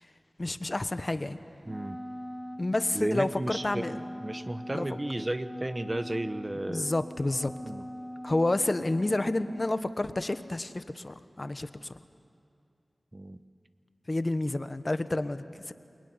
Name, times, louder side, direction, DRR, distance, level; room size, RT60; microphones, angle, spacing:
voice 1, 0.4-1.4 2.6-4.0 4.7-4.9 6.7-7.5 8.2-12.0 14.1-15.7, left 2 dB, 40° left, 11 dB, 1.2 m, -30 dB
Wind instrument woodwind instrument, 1.6-9.8, equal, ahead, 0.6 m, -42 dB
voice 2, 1.7-2.0 2.9-6.9 7.6-7.8 13.1-13.4, right 1 dB, 30° right, 11 dB, 1.2 m, -34 dB
28.0 x 21.5 x 9.8 m, 2.5 s
cardioid pair, 45°, 0 cm